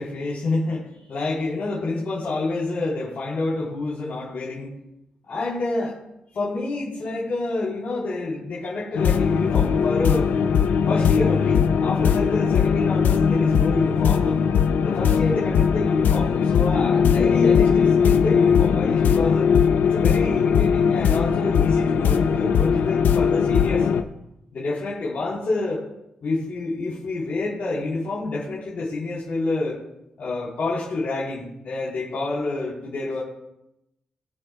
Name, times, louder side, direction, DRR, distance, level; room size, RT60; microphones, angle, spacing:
voice 1, 0.0-4.7 5.3-6.0 6.3-10.3 10.9-14.4 14.8-19.5 19.8-23.9 24.5-25.8 26.2-29.8 30.2-33.2, left 2 dB, 60° left, -8 dB, 3.9 m, -28 dB
sound 1, 9.0-24.0, left 7 dB, 90° left, 0.7 m, -19 dB
23.5 x 8.2 x 2.4 m, 0.85 s
wide cardioid pair, 125°, 3 cm